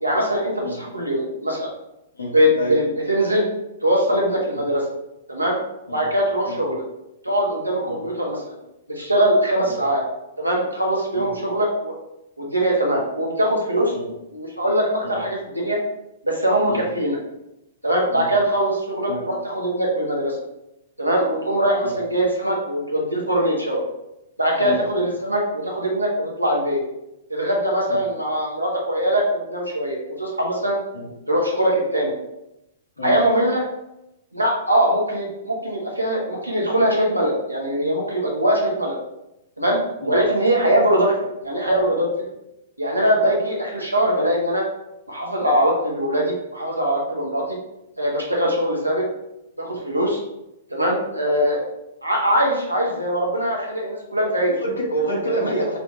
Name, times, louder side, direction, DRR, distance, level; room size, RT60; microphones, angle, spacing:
voice 1, 0.0-1.7 2.3-3.4 3.8-4.8 5.3-5.6 5.9-6.8 7.2-8.6 8.9-10.0 10.4-11.9 12.4-13.9 14.3-15.8 16.2-17.2 17.8-20.4 21.0-23.8 24.4-26.8 27.3-30.8 31.3-32.1 33.0-33.7 34.3-39.0 39.6-39.8 40.1-41.1 41.4-42.1 42.8-44.6 45.1-47.6 48.0-49.0 49.6-50.2 50.7-51.7 52.0-54.5 55.3-55.5, equal, 90° right, -1 dB, 1.0 m, -22 dB
voice 2, 2.1-2.8 5.9-6.1 6.5-6.6 7.8-8.0 9.7-9.8 11.1-11.3 13.9-14.1 15.0-15.2 16.7-16.9 18.1-18.3 19.1-19.2 21.8-22.0 24.6-24.8 27.9-28.0 30.9-31.1 33.0-33.2 40.0-40.1 54.5-55.8, right 1 dB, 80° left, -1 dB, 1.2 m, -28 dB
5.5 x 2.9 x 2.3 m, 0.89 s
figure-of-eight pair, 110°, 0 cm